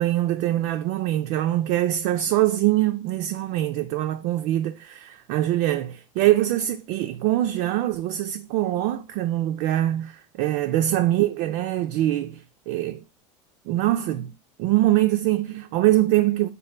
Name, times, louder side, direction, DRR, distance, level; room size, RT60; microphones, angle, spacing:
voice 1, 0.0-12.4 12.7-13.0 13.7-14.3 14.6-16.5, right 14 dB, 55° right, 0.4 m, -23 dB
5.2 x 2.2 x 3.2 m
hypercardioid pair, 100°, 17 cm